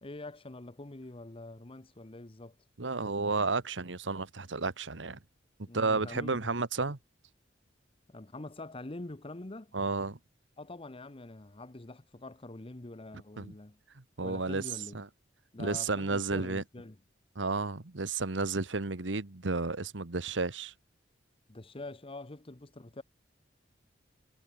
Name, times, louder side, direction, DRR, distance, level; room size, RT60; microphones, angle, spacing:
voice 1, 0.0-2.6 5.7-6.5 8.1-9.8 10.6-13.8 14.2-15.0 15.5-17.0 21.5-23.0, left 2 dB, 30° left, 1.0 m, -45 dB
voice 2, 2.8-5.2 5.7-7.0 9.7-10.2 13.4-13.5 13.9-14.6 14.9-15.1 15.6-16.6 17.3-20.7, right 3 dB, 90° right, 1.4 m, -32 dB
head